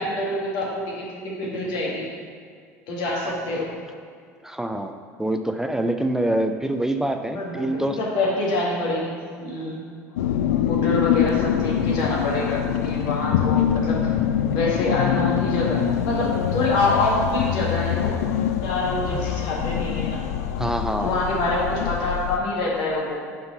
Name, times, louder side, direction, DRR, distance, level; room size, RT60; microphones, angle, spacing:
voice 1, 0.0-2.1 2.9-3.7 7.3-9.8 10.7-14.1 14.5-18.1 18.6-20.3 21.0-23.1, left 2 dB, 65° left, -4 dB, 1.6 m, -26 dB
voice 2, 4.4-8.0 19.1-19.2 20.6-21.2, right 1 dB, 5° right, 6 dB, 0.5 m, -25 dB
sound 1, 10.2-22.4, left 9 dB, 80° left, 0.3 m, -24 dB
5.5 x 3.9 x 5.7 m, 2.1 s
hypercardioid pair, 75°, 8 cm